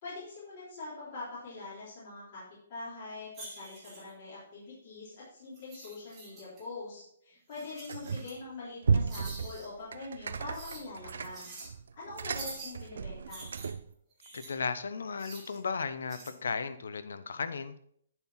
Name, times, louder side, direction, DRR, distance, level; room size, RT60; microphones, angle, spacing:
voice 1, 0.0-11.5 12.0-13.5, left 3 dB, 30° left, -10 dB, 3.4 m, -44 dB
sound 1, 3.3-4.1 5.5-6.6 7.5-8.4 9.1-9.7 10.5-10.8 11.3-11.7 12.4-12.7 13.3-14.5 15.2-15.6 16.1-16.3, right 2 dB, 15° right, 1.9 m, -47 dB
sound 2, 7.9-8.4 8.8-13.9, right 5 dB, 70° right, 0.5 m, -34 dB
voice 2, 14.3-17.7, left 5 dB, 80° left, 12 dB, 0.9 m, -35 dB
11.0 x 4.5 x 5.7 m, 0.67 s
hypercardioid pair, 175°, 0 cm